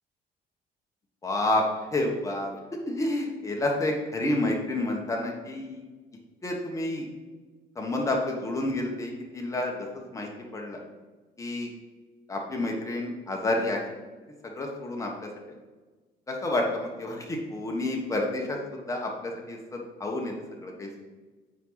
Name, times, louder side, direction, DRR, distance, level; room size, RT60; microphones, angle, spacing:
voice 1, 1.2-1.6 1.9-5.8 6.4-7.0 7.8-9.7 10.1-10.8 11.4-11.7 12.3-13.8 14.4-15.3 16.3-18.6 18.9-20.3 20.6-21.0, left 1 dB, 20° left, 0 dB, 1.4 m, -29 dB
9.3 x 4.6 x 4.1 m, 1.3 s
cardioid pair, 110°, 17 cm